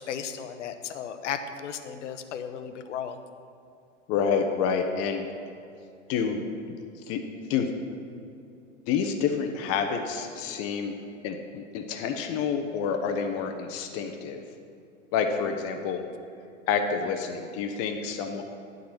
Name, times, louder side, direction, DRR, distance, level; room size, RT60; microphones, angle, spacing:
voice 1, 0.0-3.2, left 8 dB, 70° left, 8 dB, 0.8 m, -35 dB
voice 2, 4.1-5.3 6.1-6.4 7.1-7.2 7.5-7.7 8.9-10.9 11.2-14.4 15.1-16.0 16.7-18.4, left 6 dB, 40° left, 5 dB, 0.8 m, -28 dB
11.5 x 4.0 x 7.8 m, 2.6 s
hypercardioid pair, 105°, 38 cm